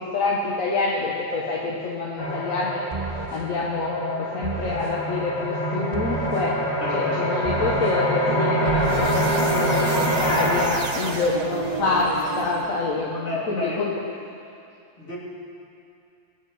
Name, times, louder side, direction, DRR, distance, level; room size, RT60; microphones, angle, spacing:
voice 1, 0.0-2.8 3.3-6.6 6.9-13.9, left 3 dB, 80° left, -4 dB, 1.6 m, -26 dB
sound 1, 2.2-10.6, equal, 15° left, 2.3 m, -25 dB
sound 2, 2.9-3.5 4.4-5.0 5.9-6.5 7.4-8.0 8.6-13.0, right 4 dB, 40° right, 0.6 m, -32 dB
voice 2, 6.8-7.4 13.1-14.0 15.0-15.2, left 2 dB, 60° left, -7 dB, 3.4 m, -30 dB
22.5 x 9.6 x 4.3 m, 2.5 s
omnidirectional pair, 1.4 m